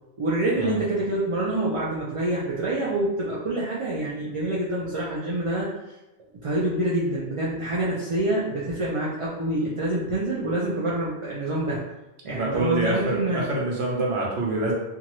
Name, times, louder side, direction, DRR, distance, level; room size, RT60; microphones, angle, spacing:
voice 1, 0.2-5.7 6.3-11.8 12.2-13.4, right 1 dB, 50° right, -6 dB, 0.4 m, -26 dB
voice 2, 12.3-14.7, right 2 dB, 80° right, -3 dB, 1.0 m, -26 dB
2.7 x 2.4 x 3.0 m, 1.0 s
omnidirectional pair, 1.1 m